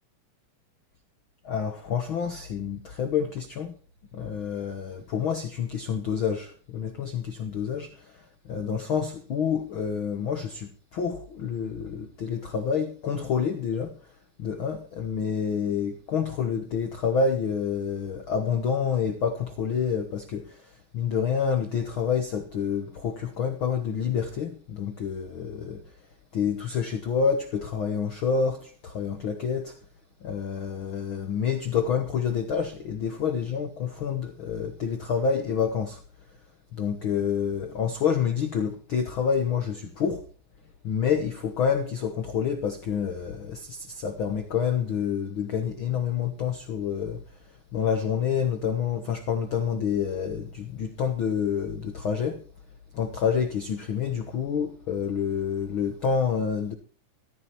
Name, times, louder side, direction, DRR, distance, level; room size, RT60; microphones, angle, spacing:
voice 1, 1.4-3.7 4.1-14.0 14.4-25.8 26.3-29.8 30.2-36.0 36.7-40.2 40.8-47.2 47.7-52.4 52.9-56.7, left 7 dB, 90° left, 1.1 m, -28 dB
14.5 x 13.0 x 4.5 m
omnidirectional pair, 4.1 m